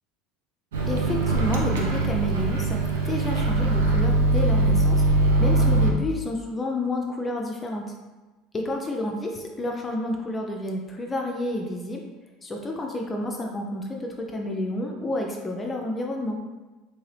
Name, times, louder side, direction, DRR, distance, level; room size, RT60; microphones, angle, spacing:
Microwave oven, 0.7-5.9, right 2 dB, 80° right, 0.4 m, -22 dB
voice 1, 0.9-5.0 5.4-7.9 8.5-12.0 12.4-16.4, left 1 dB, 25° left, 1 dB, 0.5 m, -30 dB
2.9 x 2.7 x 3.1 m, 1.2 s
hypercardioid pair, 75°, 0 cm